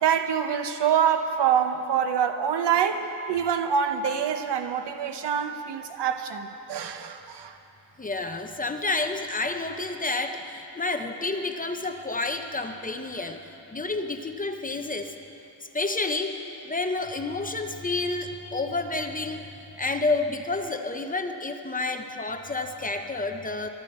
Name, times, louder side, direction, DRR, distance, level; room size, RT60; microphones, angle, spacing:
voice 1, 0.0-7.6, right 8 dB, 75° right, 8 dB, 0.9 m, -25 dB
voice 2, 8.0-15.1 15.7-19.4 19.8-23.7, left 3 dB, 20° left, 6 dB, 0.6 m, -30 dB
22.5 x 12.0 x 4.3 m, 2.9 s
wide cardioid pair, 150°, 42 cm